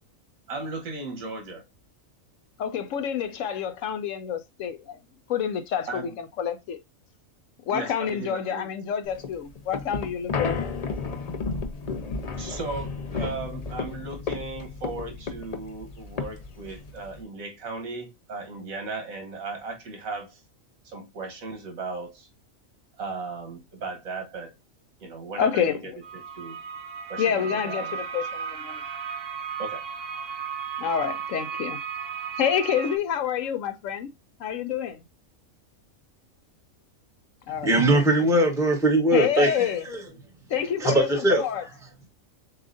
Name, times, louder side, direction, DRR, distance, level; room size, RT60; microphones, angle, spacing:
voice 1, 0.5-1.6 5.9-6.2 7.7-8.7 12.4-20.4 20.8-22.3 23.0-24.5 25.0-26.6 27.1-28.0 29.6-29.8, right 3 dB, 85° right, 1.6 m, -36 dB
voice 2, 2.6-5.0 5.3-6.8 7.7-10.7 25.4-25.8 27.2-28.8 30.8-31.8 32.4-34.1 34.4-35.0 37.5-38.0 39.1-39.8 40.5-41.6, left 8 dB, 75° left, 0.9 m, -28 dB
sound 1, 9.1-17.2, left 4 dB, 60° left, 0.4 m, -33 dB
sound 2, 26.0-33.0, right 7 dB, 50° right, 0.9 m, -35 dB
voice 3, 37.6-40.0 40.8-41.7, right 1 dB, ahead, 1.0 m, -21 dB
6.8 x 2.4 x 2.6 m
omnidirectional pair, 1.4 m